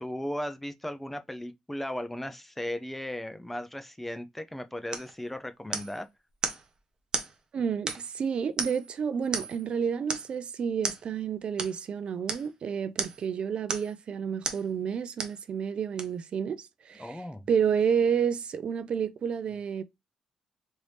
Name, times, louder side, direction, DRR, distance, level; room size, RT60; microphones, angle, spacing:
voice 1, 0.0-6.1 17.0-17.4, left 1 dB, 10° left, 0.4 m, -36 dB
sound 1, 4.9-5.1 5.7-6.0 6.4-6.6 7.1-7.3 7.9-8.2 8.6-8.9 9.3-9.6 10.1-10.3 10.8-11.0 11.6-11.8 12.3-12.5 13.0-13.3 13.7-14.0 14.4-14.7 15.2-15.4 16.0-16.1, right 4 dB, 35° right, 0.7 m, -33 dB
voice 2, 7.5-19.8, right 7 dB, 55° right, 0.3 m, -30 dB
3.1 x 2.6 x 3.2 m
cardioid pair, 105°, 2 cm